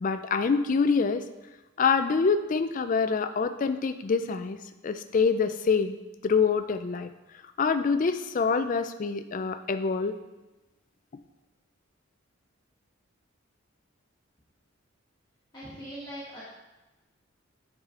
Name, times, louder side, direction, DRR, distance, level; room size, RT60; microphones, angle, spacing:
voice 1, 0.0-1.2 1.8-4.6 4.8-6.0 6.2-7.1 7.6-10.2, left 5 dB, 40° left, 9 dB, 0.4 m, -25 dB
voice 2, 15.5-16.4, equal, 20° left, -9 dB, 1.6 m, -41 dB
9.2 x 4.9 x 3.7 m, 1.1 s
head